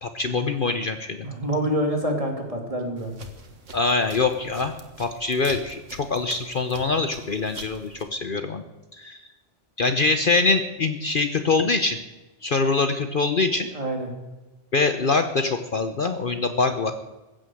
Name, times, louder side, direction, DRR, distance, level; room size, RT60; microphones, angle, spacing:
voice 1, 0.0-1.2 3.7-8.6 9.0-9.2 9.8-12.0 12.4-13.7 14.7-16.9, left 3 dB, 50° left, 8 dB, 1.0 m, -24 dB
voice 2, 1.2-3.1 13.7-14.1, equal, 30° right, 2 dB, 2.9 m, -26 dB
sound 1, 3.0-8.0, right 2 dB, 90° right, 2.1 m, -44 dB
15.5 x 9.0 x 7.8 m, 1.1 s
omnidirectional pair, 1.2 m